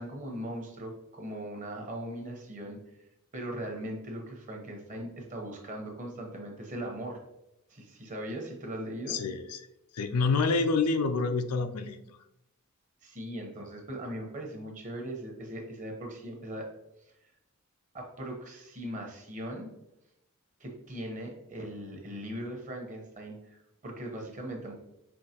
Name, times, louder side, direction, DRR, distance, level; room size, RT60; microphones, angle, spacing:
voice 1, 0.0-3.1 3.3-7.2 7.7-9.2 13.0-16.7 17.9-19.7 20.6-24.7, right 1 dB, 35° right, 1 dB, 1.0 m, -39 dB
voice 2, 9.1-9.6 9.9-12.0, left 4 dB, 85° left, 9 dB, 0.4 m, -27 dB
5.5 x 3.1 x 2.9 m, 0.85 s
head